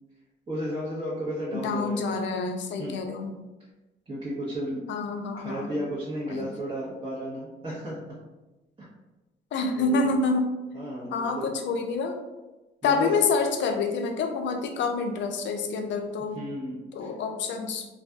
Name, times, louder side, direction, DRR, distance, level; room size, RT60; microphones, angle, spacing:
voice 1, 0.5-2.0 2.8-3.0 4.1-4.8 5.4-8.0 8.8-8.9 9.8-10.2 10.7-11.5 12.8-13.1 16.3-17.1, equal, 30° right, -8 dB, 0.8 m, -33 dB
voice 2, 1.5-3.3 4.9-5.7 6.3-6.5 9.5-10.5 11.1-12.2 12.8-16.4 16.9-17.9, left 4 dB, 65° left, 5 dB, 0.4 m, -27 dB
2.6 x 2.3 x 2.2 m, 1.1 s
cardioid pair, 90°, 20 cm